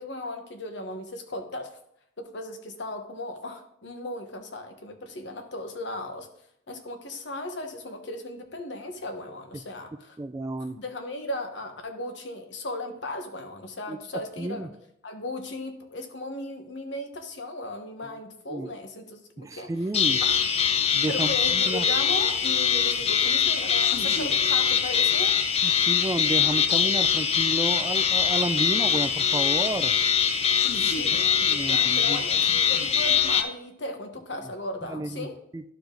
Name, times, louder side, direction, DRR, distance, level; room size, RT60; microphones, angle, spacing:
voice 1, 0.0-1.7 2.2-6.3 6.7-10.2 10.8-14.7 15.0-19.7 20.2-20.4 21.1-25.4 30.6-35.3, left 2 dB, 70° left, 5 dB, 1.2 m, -36 dB
voice 2, 10.2-10.8 13.9-14.0 14.4-14.7 18.5-18.7 19.4-20.2 20.9-21.9 25.6-30.0 31.4-32.2 32.5-32.9 34.8-35.6, right 2 dB, 15° right, 10 dB, 0.3 m, -31 dB
sound 1, 19.9-33.4, left 7 dB, 35° left, 0.6 m, -23 dB
12.0 x 4.9 x 3.9 m, 0.76 s
head